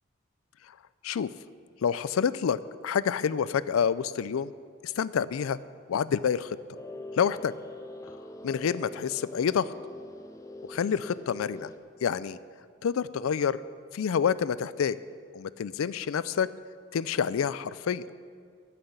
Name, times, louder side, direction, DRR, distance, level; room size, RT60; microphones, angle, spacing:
voice 1, 1.8-4.5 4.8-5.6 5.9-6.6 7.2-7.5 8.4-9.7 10.7-11.7 12.0-12.4 12.8-13.6 13.9-15.0 15.3-16.5 16.9-18.1, left 7 dB, 85° left, 17 dB, 0.4 m, -28 dB
sound 1, 6.7-11.8, left 1 dB, 15° left, 0.5 m, -43 dB
13.0 x 5.9 x 8.6 m, 2.2 s
head